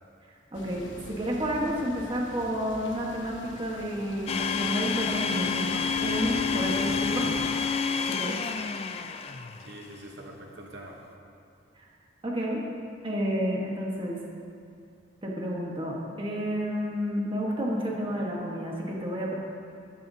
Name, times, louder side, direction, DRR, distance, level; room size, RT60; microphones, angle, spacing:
sound 1, 0.5-7.5, left 2 dB, 75° left, 0.8 m, -43 dB
voice 1, 0.5-7.3 8.1-8.4 12.2-12.6 13.0-14.2 15.2-19.4, equal, 30° right, -2 dB, 1.3 m, -30 dB
Domestic sounds home sounds, 4.3-9.8, left 6 dB, 30° left, 0.4 m, -29 dB
voice 2, 9.6-11.0, right 1 dB, 65° right, 0 dB, 1.0 m, -45 dB
13.5 x 10.5 x 2.8 m, 2.4 s
head